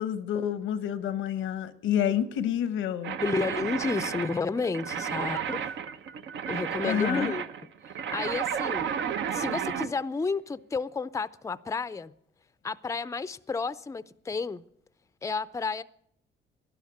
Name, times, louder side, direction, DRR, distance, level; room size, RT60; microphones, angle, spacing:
voice 1, 0.0-3.2 6.8-7.4, left 9 dB, 90° left, 1.1 m, -29 dB
sound 1, 3.0-9.9, right 8 dB, 70° right, 0.9 m, -32 dB
voice 2, 3.2-5.6 6.5-7.4 8.1-8.9 9.3-12.1 12.6-14.6 15.2-15.8, left 4 dB, 15° left, 0.5 m, -31 dB
11.5 x 11.0 x 9.5 m
cardioid pair, 90°, 20 cm